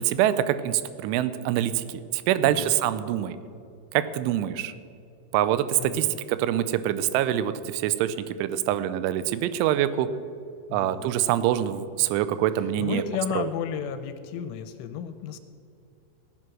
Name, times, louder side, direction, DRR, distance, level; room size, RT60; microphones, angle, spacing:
voice 1, 0.0-1.8 2.1-3.4 3.9-4.7 5.3-10.1 10.7-13.0 13.4-13.5, right 12 dB, 85° right, 14 dB, 3.0 m, -25 dB
voice 2, 5.8-6.2 10.7-11.1 12.8-15.4, left 8 dB, 85° left, 10 dB, 3.0 m, -33 dB
16.0 x 9.9 x 6.2 m, 2.5 s
omnidirectional pair, 5.7 m